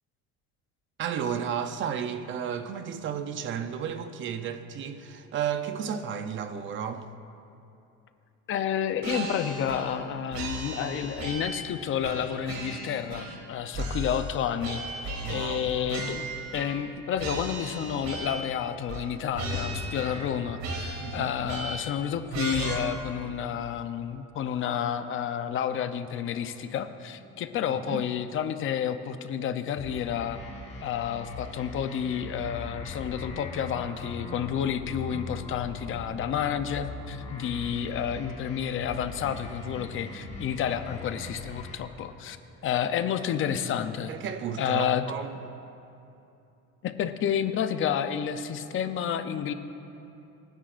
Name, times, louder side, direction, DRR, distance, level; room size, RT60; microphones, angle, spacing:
voice 1, 1.0-7.1 15.2-15.7 21.0-21.3 27.9-28.0 44.1-45.4, right 8 dB, 35° right, 0.6 m, -33 dB
voice 2, 8.5-14.8 15.3-30.4 30.8-42.4 42.6-44.1 44.6-45.0 46.8-49.5, left 9 dB, 40° left, 0.6 m, -30 dB
sound 1, 9.0-10.0 10.3-11.7 12.0-13.5 13.7-16.9 17.2-18.5 18.9-19.1 19.3-20.3 20.6-22.0 22.3-22.7, right 2 dB, 60° right, 2.4 m, -35 dB
sound 2, 19.5-23.0 23.3-23.4, left 3 dB, 90° left, 3.4 m, -42 dB
sound 3, 29.8-41.8, left 2 dB, 20° left, 1.4 m, -40 dB
27.0 x 10.5 x 2.5 m
cardioid pair, 160°, 32 cm